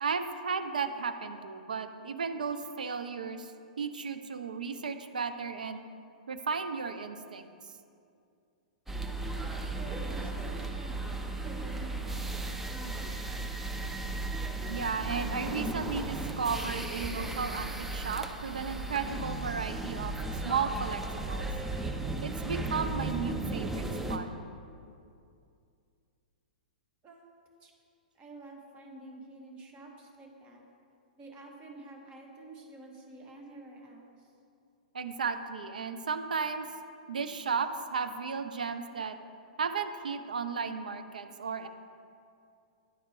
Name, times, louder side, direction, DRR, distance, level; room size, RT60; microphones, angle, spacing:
voice 1, 0.0-5.8 6.3-7.5 14.7-21.5 22.2-24.3 34.9-36.7 37.1-39.2 39.6-41.7, right 5 dB, 70° right, 9 dB, 0.4 m, -34 dB
sound 1, 8.9-24.2, right 2 dB, 5° right, 0.4 m, -35 dB
voice 2, 9.6-13.6 27.0-27.2 27.6-27.7 28.1-30.6 31.1-34.3, right 2 dB, 25° right, 0 dB, 1.0 m, -49 dB
10.0 x 4.3 x 3.2 m, 2.4 s
figure-of-eight pair, 105°, 5 cm